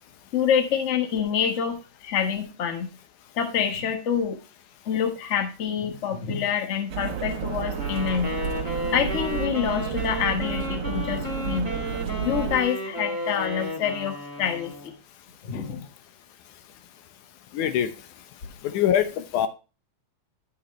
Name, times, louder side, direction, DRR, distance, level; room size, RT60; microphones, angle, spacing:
voice 1, 0.3-2.9 3.3-4.4 4.8-8.4 8.9-11.7 12.2-14.9 15.4-15.9, left 8 dB, 60° left, 5 dB, 0.7 m, -27 dB
sound 1, 6.9-12.6, right 9 dB, 60° right, 1.7 m, -31 dB
Wind instrument woodwind instrument, 7.7-15.0, left 1 dB, 15° left, 0.6 m, -33 dB
voice 2, 17.5-17.9 18.6-19.5, left 10 dB, 90° left, 9 dB, 2.4 m, -23 dB
11.0 x 6.6 x 3.2 m, 0.32 s
omnidirectional pair, 3.4 m